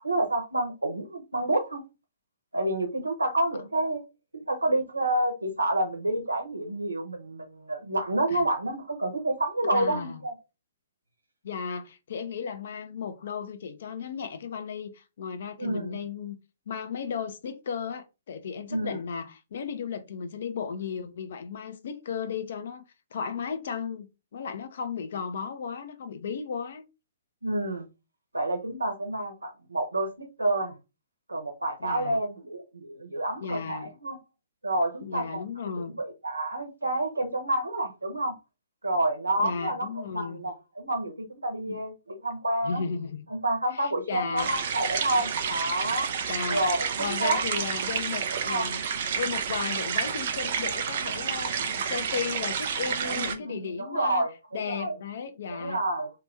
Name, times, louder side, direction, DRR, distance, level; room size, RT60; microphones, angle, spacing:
voice 1, 0.0-1.8 2.5-4.0 4.3-10.3 15.6-16.0 18.7-19.0 27.4-27.9 28.3-30.8 31.3-34.2 34.6-35.4 35.8-38.4 38.8-42.8 43.3-46.1 46.5-47.8 48.4-48.7 49.1-49.2 53.0-54.9 55.5-56.1, right 1 dB, 90° right, 1.0 m, -29 dB
voice 2, 9.7-10.2 11.4-16.4 16.7-26.8 31.8-32.2 33.4-33.9 35.0-36.0 39.4-40.4 41.7-41.8 42.6-43.3 43.7-44.5 46.3-46.7 47.0-48.8 49.2-54.3 54.5-55.8, left 6 dB, 60° left, 0.6 m, -35 dB
sound 1, 44.4-53.4, right 7 dB, 55° right, 0.5 m, -30 dB
2.8 x 2.5 x 3.5 m
figure-of-eight pair, 125°, 0 cm